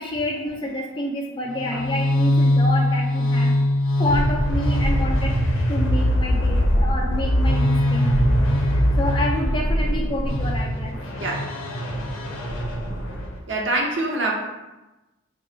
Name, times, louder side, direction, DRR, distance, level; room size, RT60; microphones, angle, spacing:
voice 1, 0.0-3.5 4.0-5.4 5.7-11.0, left 1 dB, 25° left, -1 dB, 0.4 m, -28 dB
sound 1, 1.5-13.4, equal, 80° left, 0.6 m, -21 dB
voice 2, 11.2-11.5 13.5-14.3, right 2 dB, 60° right, -1 dB, 0.6 m, -25 dB
2.8 x 2.3 x 3.8 m, 1.1 s
head